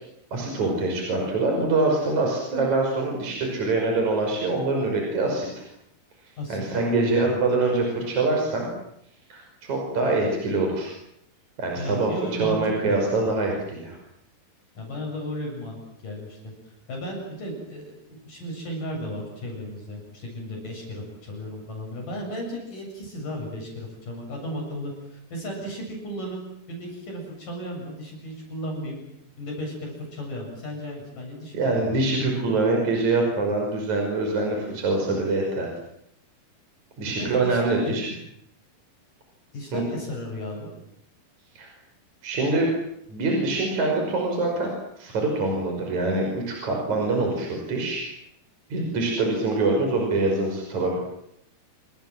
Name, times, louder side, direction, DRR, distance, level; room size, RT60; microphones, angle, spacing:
voice 1, 0.3-5.6 6.5-8.7 9.3-10.9 11.6-14.0 31.5-35.7 37.0-38.1 39.7-39.8 41.6-41.7 42.2-42.7 43.1-48.1 48.7-51.0, right 2 dB, 45° right, 1 dB, 6.8 m, -24 dB
voice 2, 6.4-7.4 11.8-13.0 14.8-15.8 16.0-16.5 16.9-26.4 26.7-29.0 29.4-32.1 37.1-38.0 39.5-40.7, equal, 55° left, 0 dB, 9.2 m, -35 dB
29.0 x 26.5 x 7.7 m, 0.76 s
omnidirectional pair, 4.6 m